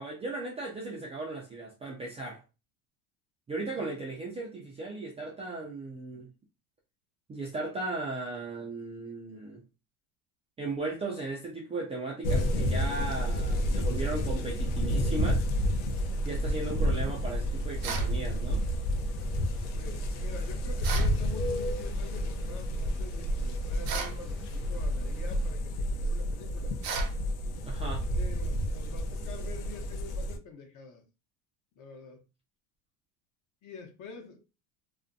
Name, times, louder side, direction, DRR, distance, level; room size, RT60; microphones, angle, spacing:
voice 1, 0.0-2.4 3.5-6.3 7.3-9.6 10.6-15.4 16.2-18.7 27.6-28.1, right 2 dB, 15° right, 0.3 m, -36 dB
voice 2, 3.6-4.0 19.7-26.8 28.1-31.0 31.8-32.2 33.6-34.4, left 5 dB, 45° left, 0.9 m, -46 dB
sound 1, 12.2-30.4, equal, 75° left, 0.6 m, -30 dB
sound 2, 15.9-25.5, right 2 dB, ahead, 0.7 m, -48 dB
sound 3, 17.8-18.1 20.8-21.1 23.8-24.2 26.8-27.1, right 6 dB, 85° right, 0.8 m, -34 dB
2.5 x 2.1 x 2.5 m
supercardioid pair, 115°, 42 cm